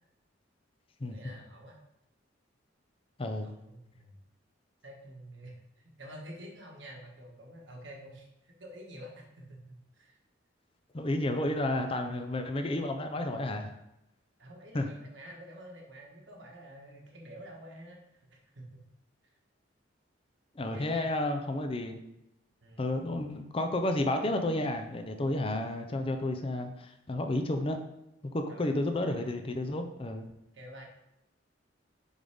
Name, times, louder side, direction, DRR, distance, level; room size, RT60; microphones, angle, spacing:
voice 1, 1.1-1.8 3.4-4.2 4.8-10.2 14.4-18.8 20.6-21.2 22.6-23.0 28.5-29.5 30.5-30.9, right 1 dB, 65° right, 0 dB, 1.4 m, -49 dB
voice 2, 3.2-3.5 10.9-13.7 14.7-14.9 20.5-22.0 22.8-27.8 28.3-30.3, left 1 dB, 30° left, 5 dB, 0.5 m, -31 dB
7.1 x 3.9 x 3.6 m, 0.85 s
head